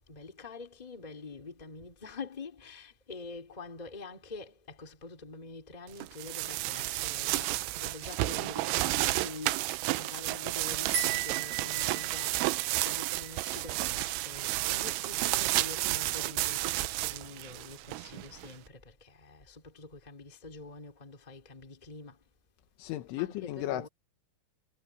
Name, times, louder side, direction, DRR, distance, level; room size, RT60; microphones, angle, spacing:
voice 1, 0.1-9.6 10.0-12.4 12.8-22.2 23.1-23.9, left 3 dB, 10° left, 2.6 m, -46 dB
sound 1, 6.0-18.5, right 19 dB, 90° right, 3.1 m, -31 dB
sound 2, 10.9-14.3, right 10 dB, 50° right, 5.7 m, -38 dB
voice 2, 22.8-23.9, left 15 dB, 85° left, 3.7 m, -34 dB
omnidirectional pair, 5.5 m